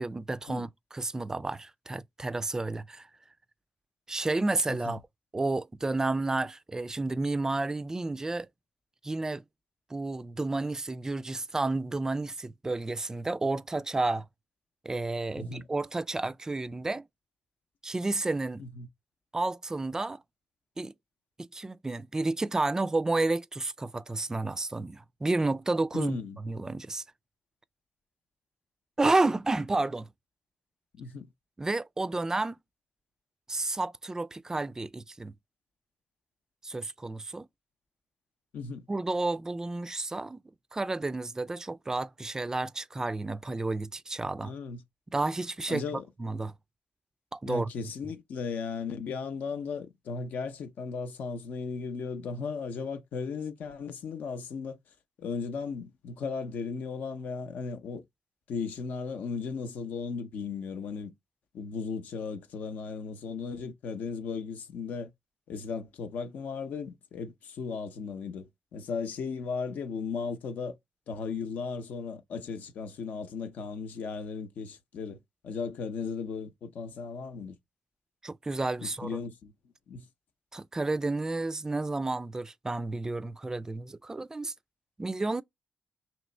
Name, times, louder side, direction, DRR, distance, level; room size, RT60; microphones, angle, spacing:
voice 1, 0.0-3.1 4.1-5.0 5.3-8.5 9.0-9.4 9.9-14.3 14.8-17.0 17.8-18.6 19.3-20.2 20.8-20.9 21.4-27.0 29.0-30.1 31.6-32.6 33.5-35.3 36.6-37.5 38.9-40.4 40.7-44.5 45.1-45.8 46.2-46.5 47.3-47.7 78.2-79.2 80.5-84.5 85.0-85.4, right 2 dB, 20° right, 0.3 m, -31 dB
voice 2, 15.4-15.7 18.6-18.9 25.9-26.4 30.9-31.3 38.5-38.9 44.4-44.8 45.7-46.0 47.5-54.8 55.2-58.0 58.5-61.1 61.5-65.1 65.5-70.8 71.1-77.6 78.8-79.5 79.9-80.1, left 5 dB, 75° left, 0.7 m, -36 dB
3.0 x 3.0 x 4.3 m
cardioid pair, 65°, 3 cm